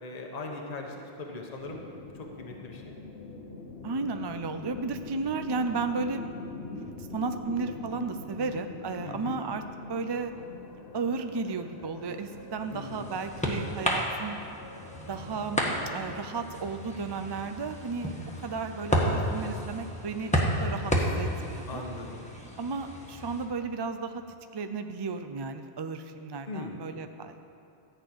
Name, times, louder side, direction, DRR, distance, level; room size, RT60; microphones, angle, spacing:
voice 1, 0.0-1.8 2.1-2.9 9.0-9.4 12.7-13.1 21.7-22.2 26.5-26.8, left 2 dB, 40° left, 1 dB, 1.1 m, -39 dB
sound 1, 1.6-16.6, left 2 dB, 65° left, 1.2 m, -44 dB
voice 2, 3.8-6.3 6.6-9.6 9.9-10.3 10.9-14.4 15.1-18.2 18.4-21.8 22.6-24.2 24.5-27.4, right 4 dB, 45° right, 8 dB, 0.3 m, -34 dB
sound 2, 12.3-23.5, equal, 5° left, 1.3 m, -32 dB
13.5 x 5.5 x 8.7 m, 2.9 s
omnidirectional pair, 1.1 m